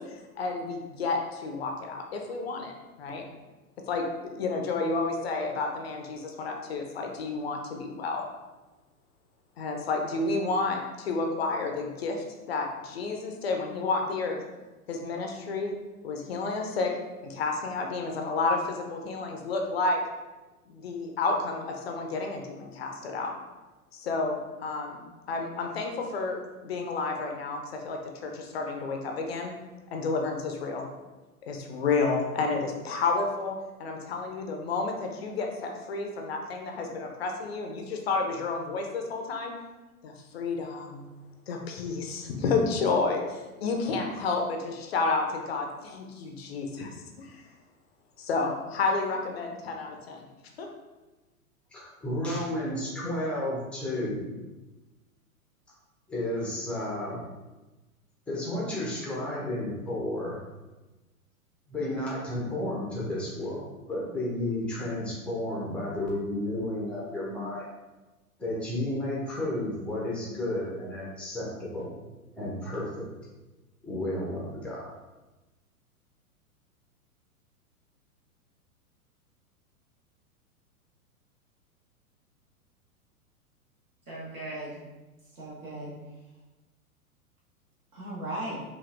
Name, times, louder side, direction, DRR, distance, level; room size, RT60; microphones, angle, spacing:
voice 1, 0.0-3.2 3.8-8.2 9.6-14.4 14.9-15.8 16.0-16.9 17.2-20.0 20.7-23.3 23.9-29.5 29.9-30.9 31.4-39.6 40.0-41.1 41.5-46.9 47.2-47.5 48.2-50.2 50.6-50.7, left 3 dB, 45° left, 2 dB, 0.6 m, -31 dB
voice 2, 51.7-54.3 56.1-57.2 58.3-60.4 61.7-67.7 68.4-71.9 72.4-73.1 73.8-74.9, left 1 dB, 5° left, -6 dB, 0.6 m, -32 dB
voice 3, 84.1-84.8 85.3-85.9 87.9-88.6, right 1 dB, 70° right, -7 dB, 1.5 m, -37 dB
5.1 x 2.5 x 2.5 m, 1.1 s
figure-of-eight pair, 105°, 45 cm